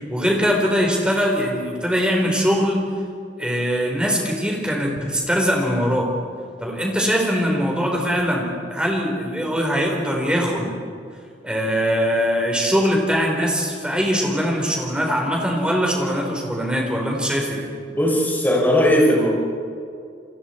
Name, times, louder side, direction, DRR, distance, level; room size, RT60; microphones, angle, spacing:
voice 1, 0.1-2.8 3.4-6.1 6.6-10.7 11.4-17.6, equal, 5° right, -1 dB, 3.9 m, -21 dB
voice 2, 17.9-19.3, equal, 10° left, -5 dB, 5.9 m, -17 dB
29.0 x 24.0 x 4.4 m, 2.3 s
head